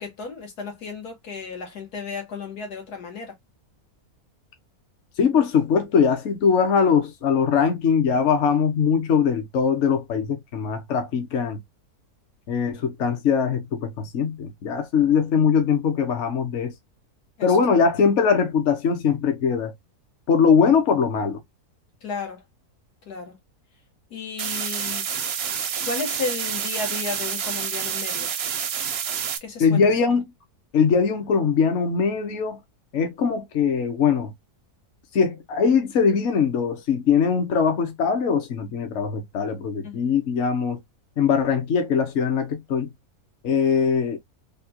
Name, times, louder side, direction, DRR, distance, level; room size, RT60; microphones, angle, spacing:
voice 1, 0.0-3.3 15.0-15.2 17.4-17.6 22.0-22.4 23.1-23.4 24.1-25.0 25.9-28.3 29.4-29.8 39.8-40.0, left 4 dB, 90° left, 1.7 m, -33 dB
voice 2, 5.2-11.6 12.5-16.7 17.4-19.7 20.3-21.4 29.6-30.2 30.7-32.6 32.9-34.3 35.1-40.8 41.2-42.9 43.4-44.2, left 6 dB, 55° left, 1.0 m, -21 dB
sound 1, 24.4-29.4, right 8 dB, 65° right, 0.6 m, -28 dB
3.6 x 2.3 x 2.7 m
omnidirectional pair, 1.6 m